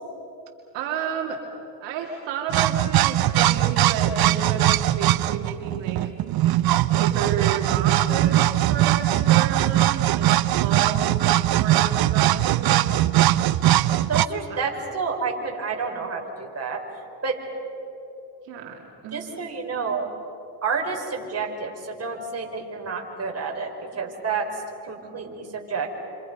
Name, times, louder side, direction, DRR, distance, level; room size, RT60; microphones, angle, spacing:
voice 1, 0.7-1.4 1.8-6.0 7.0-11.1 11.6-12.7 14.5-14.6 18.5-19.5, right 6 dB, 85° right, 1 dB, 2.7 m, -31 dB
sound 1, 2.5-14.3, right 14 dB, 55° right, 0.8 m, -20 dB
voice 2, 14.1-16.8 17.2-17.4 19.1-20.1 20.6-24.5 24.8-25.9, right 5 dB, 35° right, 1 dB, 4.9 m, -29 dB
29.5 x 27.0 x 5.5 m, 2.9 s
cardioid pair, 85°, 43 cm